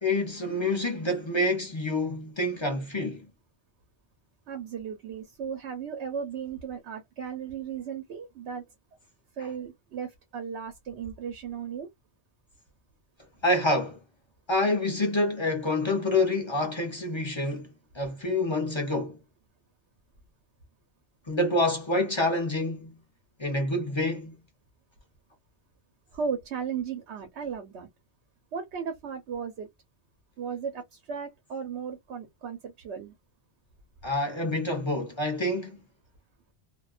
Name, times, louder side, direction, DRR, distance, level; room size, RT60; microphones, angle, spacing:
voice 1, 0.0-3.3 13.4-14.0 14.5-19.2 21.3-22.9 23.4-24.3 34.0-35.8, left 1 dB, 30° left, 0.6 m, -27 dB
voice 2, 4.5-8.7 9.4-11.9 26.1-27.9 28.5-29.7 30.4-33.1, right 6 dB, 85° right, 1.0 m, -36 dB
2.4 x 2.2 x 2.3 m
omnidirectional pair, 1.1 m